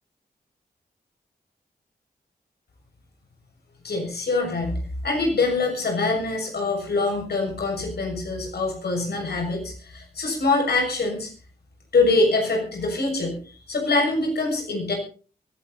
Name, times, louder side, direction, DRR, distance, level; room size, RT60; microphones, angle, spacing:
voice 1, 3.8-4.7 5.0-11.3 11.9-14.9, left 3 dB, 75° left, 1 dB, 6.8 m, -24 dB
23.0 x 11.0 x 4.2 m, 0.39 s
cardioid pair, 60°, 17 cm